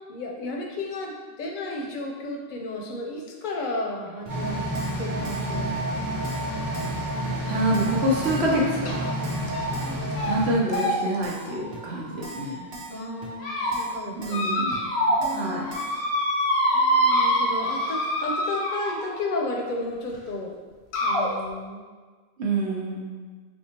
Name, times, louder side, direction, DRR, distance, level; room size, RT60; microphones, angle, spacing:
voice 1, 0.1-4.6 5.0-6.1 9.8-10.0 12.9-14.4 15.2-15.8 16.7-20.6 21.0-21.8, left 2 dB, 60° left, 1 dB, 0.6 m, -33 dB
sound 1, 4.3-10.5, right 1 dB, 20° right, 0.7 m, -29 dB
Keyboard (musical), 4.3-4.4 4.7-5.0 5.2-5.5 5.7-5.8 6.2-6.5 6.7-7.0 7.2-7.3 7.7-8.0 8.2-8.5 8.7-8.8 9.2-9.5 9.7-10.0 10.2-10.3 10.7-11.0 11.2-11.5 11.7-11.8 12.2-12.5 12.7-13.0 13.2-13.3 13.7-13.9 14.2-14.4 14.7-14.8 15.2-15.4 15.7-15.9, right 3 dB, 65° right, 0.9 m, -41 dB
voice 2, 7.5-9.1 10.3-12.7 14.2-15.6 22.4-23.3, right 1 dB, 90° right, -3 dB, 1.0 m, -27 dB
sound 2, 8.9-9.1 9.5-9.8 10.1-10.3 10.7-12.6 13.1-13.7 14.3-15.3 15.5-19.2 20.1-20.2 20.9-21.3, equal, 90° left, 0.9 m, -26 dB
4.3 x 2.3 x 2.8 m, 1.4 s
omnidirectional pair, 1.0 m